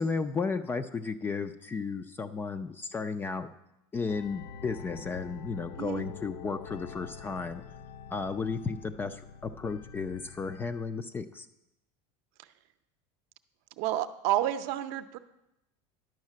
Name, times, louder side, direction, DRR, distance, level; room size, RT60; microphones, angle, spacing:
voice 1, 0.0-3.5 3.9-7.6 8.1-11.5, left 4 dB, 15° left, 10 dB, 0.3 m, -34 dB
sound 1, 4.1-10.8, left 6 dB, 80° left, 0.7 m, -46 dB
voice 2, 13.8-15.2, right 13 dB, 55° right, 10 dB, 0.6 m, -30 dB
10.5 x 5.7 x 7.4 m, 0.89 s
supercardioid pair, 155°, 14 cm